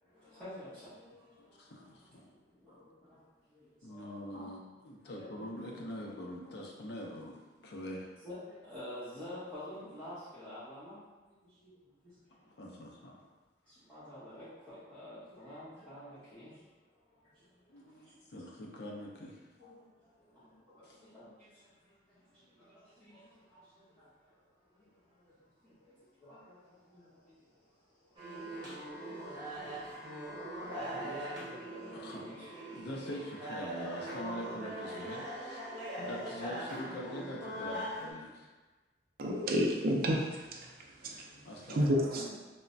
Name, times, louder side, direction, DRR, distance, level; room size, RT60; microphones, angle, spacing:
voice 1, 0.0-4.4 5.0-5.7 6.4-6.5 8.2-11.0 11.4-12.6 13.6-16.6 16.9-18.2 19.6-24.5 24.8-29.9 30.4-32.5 35.6-36.1, left 1 dB, 5° left, -16 dB, 0.8 m, -51 dB
voice 2, 1.4-2.3 3.8-8.1 12.4-13.2 16.5-16.6 17.7-19.4 20.8-21.0 31.9-32.3 32.6-35.6 36.0-38.5 41.4-42.4, equal, 65° left, -1 dB, 0.5 m, -44 dB
sound 1, 28.2-38.1, right 1 dB, 25° right, 0.9 m, -41 dB
voice 3, 39.2-40.6 41.0-41.2 41.8-42.3, equal, 55° right, 0 dB, 0.4 m, -30 dB
3.1 x 2.1 x 2.5 m, 1.2 s
head